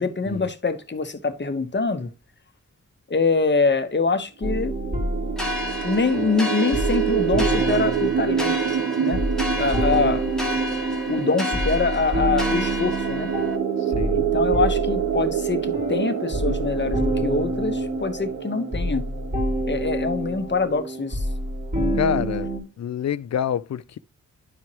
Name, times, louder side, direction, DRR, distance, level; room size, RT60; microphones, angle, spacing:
voice 1, 0.0-2.1 3.1-4.7 5.8-9.2 9.6-10.2 11.1-13.3 14.1-19.1 19.6-21.3 21.7-22.2, left 4 dB, 35° left, 1.0 m, -24 dB
sound 1, 4.4-22.6, right 1 dB, 25° right, 2.9 m, -28 dB
sound 2, 4.5-20.2, right 10 dB, 75° right, 0.6 m, -27 dB
sound 3, 5.4-13.6, left 1 dB, ahead, 1.5 m, -32 dB
voice 2, 9.7-10.1 13.9-14.2 22.0-22.5 22.8-24.0, left 8 dB, 60° left, 0.4 m, -27 dB
11.0 x 4.5 x 3.0 m
wide cardioid pair, 75°, 30 cm